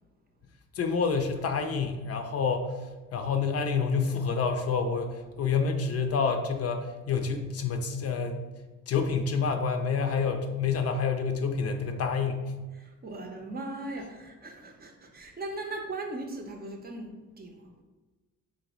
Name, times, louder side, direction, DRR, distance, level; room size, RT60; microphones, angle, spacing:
voice 1, 0.7-2.7 3.1-8.4 8.9-12.5, left 5 dB, 55° left, 5 dB, 0.5 m, -28 dB
voice 2, 12.8-17.6, right 2 dB, 30° right, 3 dB, 0.6 m, -39 dB
3.8 x 3.0 x 3.0 m, 1.2 s
cardioid pair, 90°, 30 cm